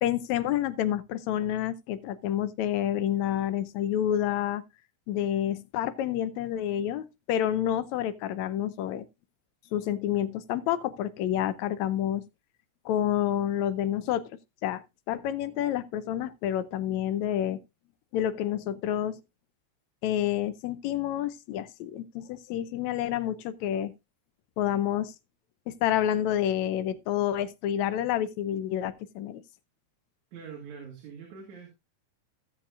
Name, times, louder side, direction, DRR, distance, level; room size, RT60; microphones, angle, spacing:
voice 1, 0.0-4.6 5.1-9.1 9.7-12.2 12.9-14.3 14.6-17.6 18.1-19.2 20.0-23.9 24.6-25.1 25.7-29.4, left 11 dB, 80° left, 2.0 m, -29 dB
voice 2, 30.3-31.7, right 6 dB, 85° right, 3.6 m, -43 dB
16.0 x 7.5 x 2.4 m
omnidirectional pair, 3.3 m